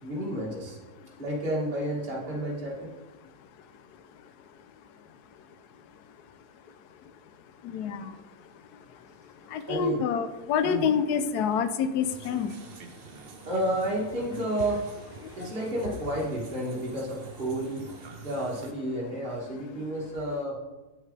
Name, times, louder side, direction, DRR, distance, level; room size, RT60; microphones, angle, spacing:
voice 1, 0.0-0.8 1.2-2.9 9.4-10.0 10.6-10.8 13.4-14.8 15.2-18.0 18.2-20.6, right 1 dB, 35° right, -5 dB, 2.0 m, -31 dB
voice 2, 7.6-8.1 9.5-12.5, left 7 dB, 85° left, 10 dB, 1.2 m, -27 dB
sound 1, 12.0-18.7, right 5 dB, 55° right, 0.7 m, -46 dB
8.3 x 7.6 x 3.3 m, 1.1 s
omnidirectional pair, 1.6 m